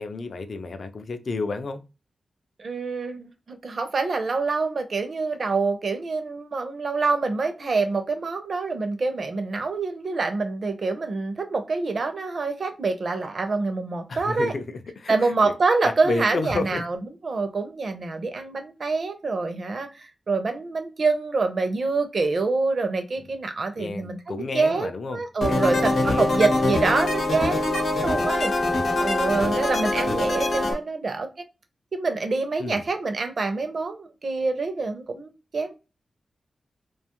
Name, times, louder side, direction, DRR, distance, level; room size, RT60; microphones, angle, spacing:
voice 1, 0.0-1.8 14.1-15.5 15.8-16.8 23.8-25.2 25.5-26.6 32.6-32.8, left 3 dB, 50° left, 0.3 m, -31 dB
voice 2, 2.6-14.5 15.1-28.5 29.0-31.3 31.9-35.8, right 3 dB, 50° right, 0.5 m, -26 dB
sound 1, 25.4-30.7, left 2 dB, 75° left, 0.7 m, -24 dB
2.4 x 2.2 x 2.9 m
wide cardioid pair, 170°, 0 cm